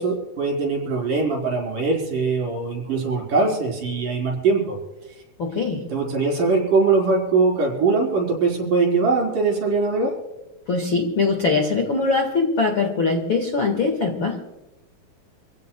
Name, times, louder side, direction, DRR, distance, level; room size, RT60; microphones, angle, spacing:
voice 1, 0.0-4.8 5.9-10.1, right 4 dB, 60° right, -1 dB, 5.6 m, -21 dB
voice 2, 5.4-5.8 10.7-14.4, left 4 dB, 45° left, 2 dB, 1.9 m, -22 dB
27.0 x 16.0 x 2.3 m, 1.0 s
omnidirectional pair, 4.5 m